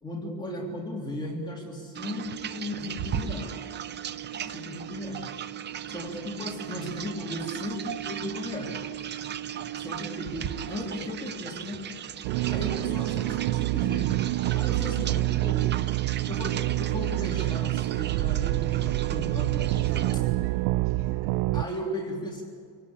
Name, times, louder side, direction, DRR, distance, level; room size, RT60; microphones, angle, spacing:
voice 1, 0.0-3.6 4.5-5.3 5.9-8.8 9.7-11.8 12.4-14.1 14.5-15.7 16.2-20.3 21.5-22.4, left 1 dB, 10° left, -2 dB, 3.3 m, -36 dB
sound 1, 2.0-20.2, right 9 dB, 20° right, 0.6 m, -37 dB
voice 2, 12.2-12.6 15.9-16.2 19.4-21.5, right 3 dB, 50° right, 3 dB, 7.1 m, -48 dB
sound 2, 12.2-21.6, right 19 dB, 70° right, 0.5 m, -27 dB
28.0 x 18.0 x 8.6 m, 2.1 s
cardioid pair, 150°, 50 cm